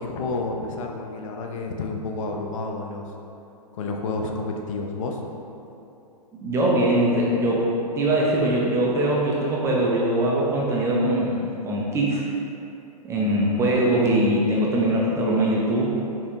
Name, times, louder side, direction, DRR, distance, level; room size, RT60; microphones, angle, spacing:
voice 1, 0.0-3.0 3.7-5.2, left 3 dB, 55° left, 2 dB, 0.5 m, -30 dB
voice 2, 6.4-7.7 8.0-12.2 13.0-15.9, right 1 dB, 15° right, -4 dB, 0.4 m, -22 dB
5.2 x 3.3 x 2.5 m, 2.8 s
hypercardioid pair, 125°, 20 cm